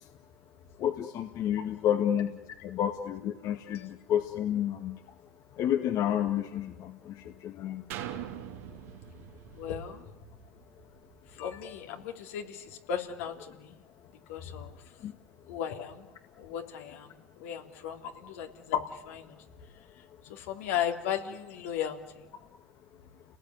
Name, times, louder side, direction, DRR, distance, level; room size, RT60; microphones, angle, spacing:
voice 1, 0.8-2.3 2.6-5.0 5.6-7.1 7.4-7.8 15.0-15.1, left 10 dB, 50° left, 5 dB, 2.0 m, -30 dB
sound 1, 7.9-11.7 12.2-12.3, right 11 dB, 75° right, 3.0 m, -43 dB
voice 2, 9.5-10.1 11.4-13.7 14.3-14.7 15.5-16.1 16.4-19.4 20.3-22.3, left 9 dB, 75° left, 3 dB, 3.4 m, -36 dB
30.0 x 19.5 x 9.6 m, 1.1 s
hypercardioid pair, 90°, 8 cm